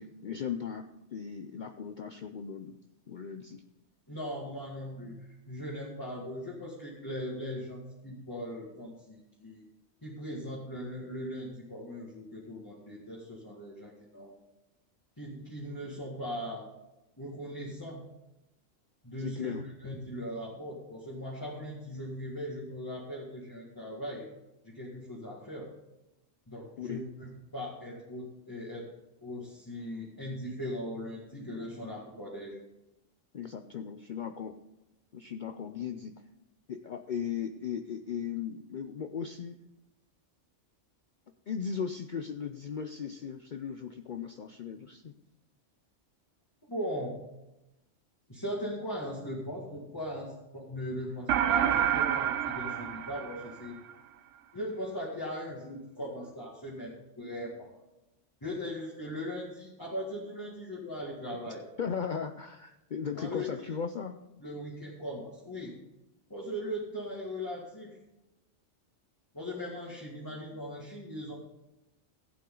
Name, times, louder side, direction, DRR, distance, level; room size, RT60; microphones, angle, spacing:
voice 1, 0.0-2.8 3.1-3.6 19.2-19.6 26.8-27.0 33.3-34.5 35.1-36.1 36.7-39.6 41.5-45.1 61.8-64.2, left 7 dB, 55° left, 7 dB, 0.6 m, -37 dB
voice 2, 4.1-9.6 10.0-14.3 15.2-16.7 17.2-18.0 19.0-24.3 24.6-25.7 26.5-28.9 29.2-32.6 46.7-47.2 48.3-53.8 54.5-57.7 58.4-61.6 63.1-63.7 64.4-65.7 66.3-68.0 69.3-71.3, equal, 15° left, -4 dB, 1.9 m, -39 dB
sound 1, 51.3-53.9, right 9 dB, 85° right, 1.0 m, -28 dB
15.5 x 8.5 x 3.9 m, 0.93 s
omnidirectional pair, 1.3 m